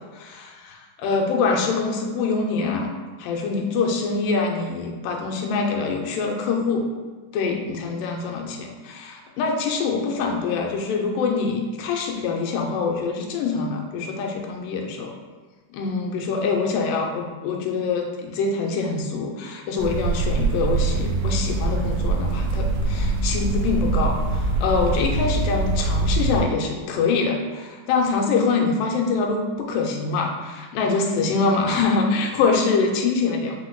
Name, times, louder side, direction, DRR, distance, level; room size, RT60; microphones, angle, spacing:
voice 1, 0.0-0.7 1.0-2.9 3.2-6.8 7.3-15.1 15.7-33.5, left 4 dB, 90° left, 1 dB, 2.2 m, -24 dB
sound 1, 19.8-26.4, right 3 dB, 85° right, 1.6 m, -23 dB
5.4 x 2.0 x 3.8 m, 1.4 s
omnidirectional pair, 3.8 m